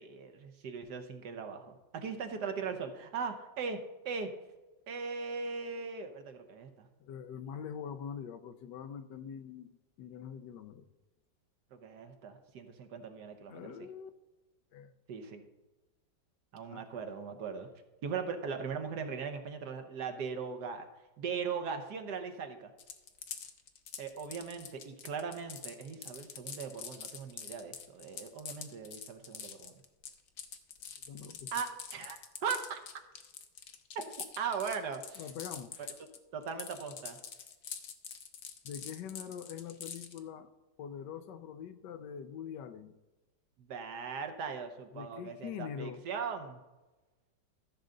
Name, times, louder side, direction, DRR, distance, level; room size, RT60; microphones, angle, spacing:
voice 1, 0.0-4.3 4.9-6.9 11.7-13.6 15.1-15.4 16.5-17.7 18.0-20.9 21.2-22.7 24.0-29.7 31.5-32.8 33.9-35.2 36.3-37.2 43.7-46.6, right 6 dB, 70° right, 6 dB, 1.5 m, -39 dB
voice 2, 7.0-10.9 13.5-14.1 14.7-14.9 16.7-16.8 31.1-31.5 35.2-35.9 38.6-40.5 40.8-43.0 44.9-46.0, left 8 dB, 75° left, 11 dB, 1.2 m, -44 dB
sound 1, 22.8-36.2 36.4-40.2, left 7 dB, 55° left, 1.1 m, -45 dB
14.5 x 6.5 x 3.8 m, 1.1 s
omnidirectional pair, 2.0 m